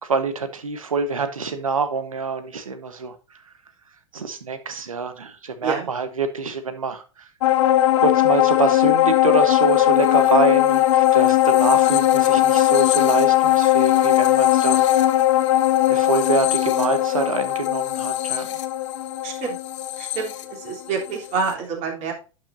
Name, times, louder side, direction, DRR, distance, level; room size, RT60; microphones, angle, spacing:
voice 1, 0.0-3.5 4.1-7.3 7.9-15.1 15.9-18.5, right 4 dB, 85° right, 10 dB, 1.3 m, -26 dB
sound 1, 7.4-21.1 21.5-21.6, left 13 dB, 60° left, 0.9 m, -18 dB
voice 2, 19.2-19.6 20.0-22.1, right 5 dB, 45° right, 0 dB, 3.5 m, -27 dB
11.0 x 6.2 x 2.7 m, 0.32 s
hypercardioid pair, 100°, 17 cm